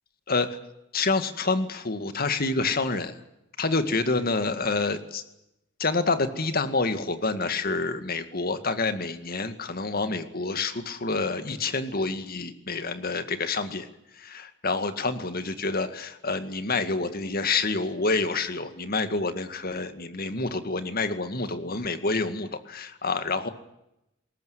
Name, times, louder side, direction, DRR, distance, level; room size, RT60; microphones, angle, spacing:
voice 1, 0.3-0.6 0.9-3.2 3.6-5.2 5.8-13.9 14.2-23.5, left 3 dB, 50° left, 10 dB, 2.1 m, -28 dB
21.0 x 19.0 x 9.5 m, 0.87 s
head